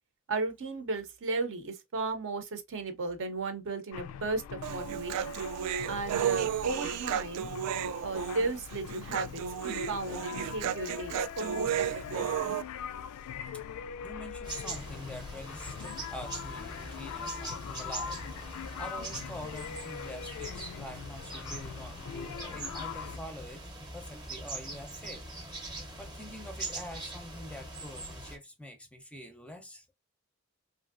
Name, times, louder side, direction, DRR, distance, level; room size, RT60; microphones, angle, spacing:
voice 1, 0.3-5.4 5.9-7.5 8.0-12.6, right 3 dB, 60° right, 0.7 m, -35 dB
sound 1, 3.9-23.2, left 8 dB, 75° left, 0.3 m, -42 dB
Human voice, 4.6-12.6, right 9 dB, 80° right, 0.3 m, -33 dB
voice 2, 14.0-18.2 18.8-25.3 25.6-25.7 26.0-29.9, left 1 dB, 5° left, 0.5 m, -46 dB
sound 2, 14.4-28.4, right 2 dB, 20° right, 0.7 m, -42 dB
3.1 x 2.6 x 2.4 m
head